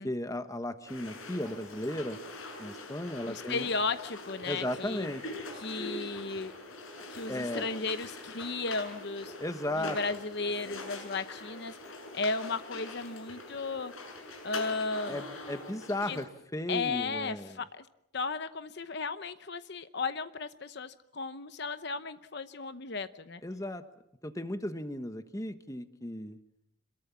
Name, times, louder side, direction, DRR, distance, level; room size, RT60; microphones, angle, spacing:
voice 1, 0.0-2.2 2.6-3.7 4.4-5.3 7.3-7.7 9.4-10.0 15.1-17.6 23.4-23.8 24.2-26.4, left 1 dB, 15° left, 9 dB, 1.2 m, -35 dB
sound 1, 0.9-16.3, left 2 dB, 85° left, 6.9 m, -43 dB
voice 2, 3.2-5.1 5.6-6.5 7.1-9.3 9.8-11.8 12.1-13.9 14.4-15.2 16.1-16.2 16.7-17.8 18.1-23.4, left 4 dB, 55° left, 11 dB, 0.9 m, -35 dB
27.0 x 22.0 x 7.3 m, 0.79 s
head